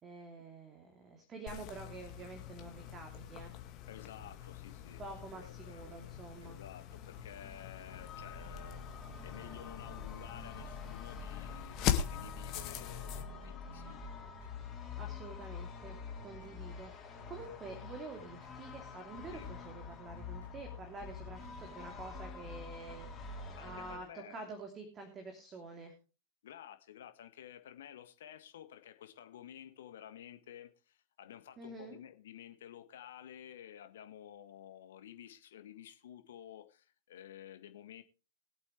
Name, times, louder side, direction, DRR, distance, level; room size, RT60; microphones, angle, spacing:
voice 1, 0.0-3.5 5.0-6.6 15.0-25.9 31.6-32.0, right 3 dB, 25° right, 3.0 m, -48 dB
sound 1, 1.5-13.2, left 10 dB, 40° left, 2.0 m, -41 dB
sound 2, 2.7-3.9 4.2-22.0, right 3 dB, 70° right, 5.7 m, -64 dB
voice 2, 3.9-5.0 5.3-5.8 6.4-8.9 9.2-14.2 19.3-19.5 23.5-24.4 26.4-38.0, left 10 dB, 60° left, 1.6 m, -52 dB
sound 3, 6.8-24.0, left 5 dB, 20° left, 4.1 m, -47 dB
22.0 x 8.2 x 3.3 m
figure-of-eight pair, 95°, 0 cm